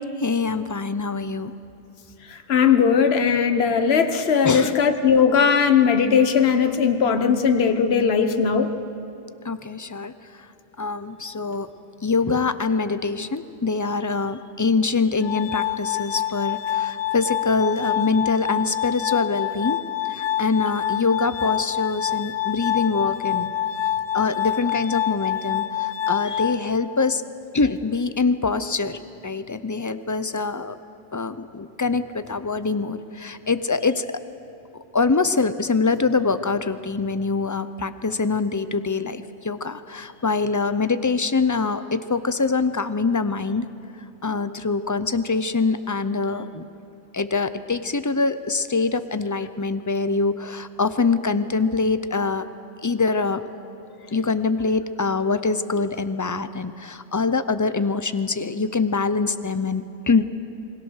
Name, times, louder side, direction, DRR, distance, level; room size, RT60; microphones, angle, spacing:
voice 1, 0.2-1.5 4.4-4.7 9.4-10.1 10.8-11.7 12.0-19.8 20.1-23.5 24.1-27.2 27.5-29.0 29.2-30.7 31.1-34.1 34.9-43.6 44.2-46.6 47.1-52.5 52.8-53.4 54.1-60.2, left 4 dB, 25° left, 12 dB, 0.4 m, -24 dB
voice 2, 2.5-8.7, left 6 dB, 60° left, 7 dB, 1.4 m, -18 dB
Glass, 15.2-27.2, left 11 dB, 90° left, 1.1 m, -26 dB
27.5 x 21.0 x 6.4 m, 2.7 s
omnidirectional pair, 1.2 m